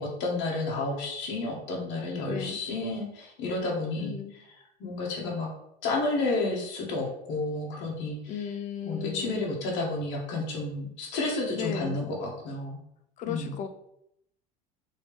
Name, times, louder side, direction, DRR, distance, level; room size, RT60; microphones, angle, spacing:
voice 1, 0.0-4.2 4.5-5.5 5.8-8.5 8.8-12.8 13.3-13.6, left 2 dB, 60° left, -2 dB, 1.0 m, -31 dB
voice 2, 2.3-2.6 4.0-4.3 8.3-9.5 11.5-12.0 13.2-13.7, left 7 dB, 35° left, 8 dB, 0.4 m, -35 dB
3.1 x 2.8 x 3.1 m, 0.77 s
supercardioid pair, 115°, 21 cm